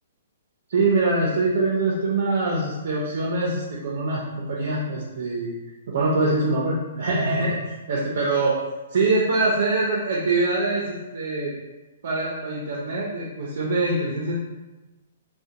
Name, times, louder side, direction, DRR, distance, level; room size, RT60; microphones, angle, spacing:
voice 1, 0.7-5.5 5.9-8.6 8.9-11.5 12.0-14.4, right 2 dB, 65° right, -4 dB, 0.5 m, -24 dB
2.5 x 2.1 x 2.7 m, 1.1 s
hypercardioid pair, 160°, 0 cm